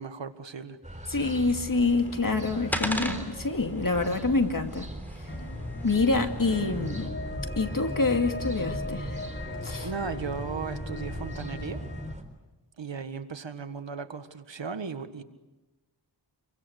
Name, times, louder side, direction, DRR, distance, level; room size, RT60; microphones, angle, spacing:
voice 1, 0.0-1.1 9.8-11.8 12.8-15.2, right 5 dB, 85° right, 10 dB, 1.7 m, -36 dB
sound 1, 0.8-12.2, right 1 dB, 15° right, 3.9 m, -39 dB
voice 2, 1.1-4.9 5.2-5.3 5.8-7.1 7.6-9.3 9.6-9.9, left 3 dB, 50° left, 6 dB, 2.5 m, -26 dB
sound 2, 1.6-7.1, equal, 5° left, 3.7 m, -39 dB
sound 3, 5.3-12.1, left 2 dB, 25° left, 2.0 m, -38 dB
26.5 x 23.5 x 8.2 m, 1.1 s
wide cardioid pair, 65°, 43 cm